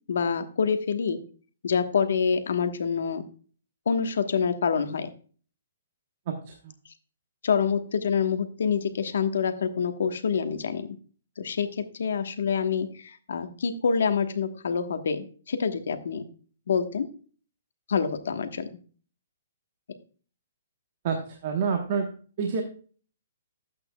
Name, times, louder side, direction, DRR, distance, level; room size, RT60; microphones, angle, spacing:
voice 1, 0.1-1.2 1.6-3.2 3.9-5.1 7.4-11.0 11.4-16.2 16.7-17.1 17.9-18.7, left 6 dB, 65° left, 9 dB, 1.2 m, -26 dB
voice 2, 6.3-6.7 21.0-22.1 22.4-22.6, right 6 dB, 35° right, 3 dB, 1.1 m, -28 dB
11.5 x 8.4 x 2.2 m, 0.41 s
hypercardioid pair, 175°, 0 cm